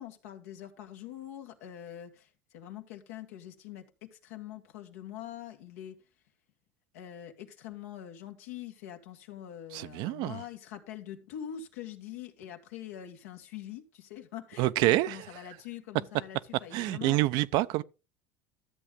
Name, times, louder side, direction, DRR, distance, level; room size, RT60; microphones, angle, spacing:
voice 1, 0.0-6.0 6.9-17.2, left 11 dB, 90° left, 1.9 m, -44 dB
voice 2, 9.7-10.4 14.6-15.2 16.7-17.8, right 17 dB, 65° right, 0.6 m, -27 dB
13.0 x 7.9 x 3.7 m
supercardioid pair, 105°, 8 cm